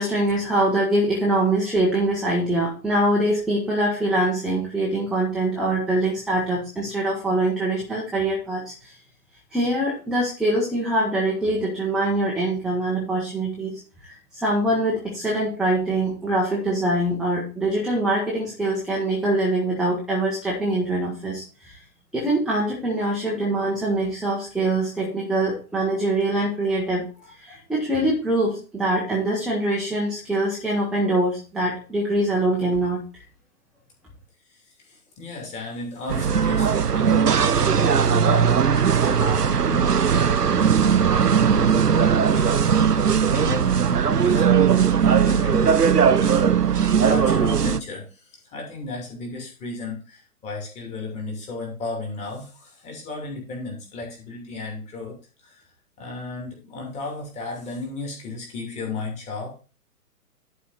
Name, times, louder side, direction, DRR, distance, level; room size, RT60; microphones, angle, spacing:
voice 1, 0.0-9.0 9.5-21.8 22.1-33.0, right 1 dB, ahead, -4 dB, 0.9 m, -24 dB
voice 2, 34.5-55.2 55.4-55.6 56.0-59.6, left 3 dB, 15° left, 0 dB, 2.6 m, -34 dB
sound 1, 36.1-47.8, right 7 dB, 90° right, 0.6 m, -19 dB
11.0 x 4.7 x 4.0 m, 0.35 s
figure-of-eight pair, 125°, 46 cm